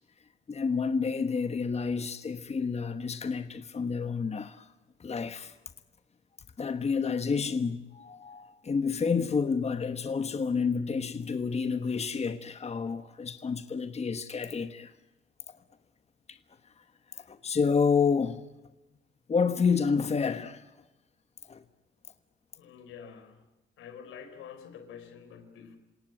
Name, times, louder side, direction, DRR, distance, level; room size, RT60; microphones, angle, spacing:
voice 1, 0.5-4.7 5.0-5.6 6.6-14.9 15.5-15.6 16.3-16.4 17.1-18.4 19.3-20.7 21.4-21.6, left 5 dB, 35° left, 1.3 m, -29 dB
voice 2, 22.6-23.4 23.8-25.8, left 7 dB, 85° left, 4.0 m, -47 dB
28.0 x 18.0 x 8.9 m
cardioid pair, 90°, 20 cm